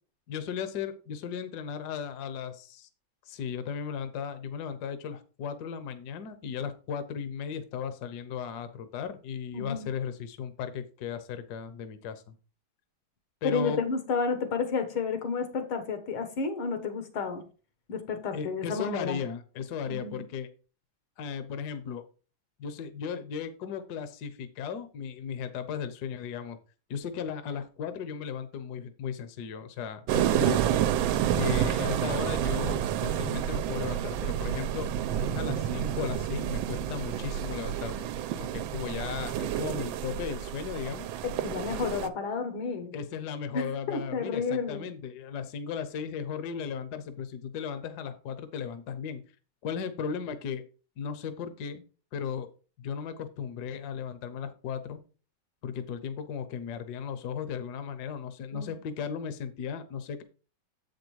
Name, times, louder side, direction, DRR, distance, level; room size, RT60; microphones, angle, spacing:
voice 1, 0.3-2.9 3.3-12.2 13.4-13.8 18.3-20.5 21.2-22.0 22.6-26.6 26.9-30.6 31.3-34.9 35.2-38.1 38.4-41.1 42.9-49.2 49.6-50.6 51.0-51.8 52.1-52.5 52.8-55.0 55.6-60.2, left 7 dB, 60° left, 1.2 m, -36 dB
voice 2, 9.5-9.9 13.4-17.4 17.9-19.2 19.9-20.3 41.2-42.9 43.5-44.9 58.5-58.7, left 5 dB, 85° left, 2.2 m, -31 dB
sound 1, 30.1-42.1, right 10 dB, 80° right, 1.4 m, -29 dB
7.8 x 5.2 x 4.6 m
omnidirectional pair, 2.2 m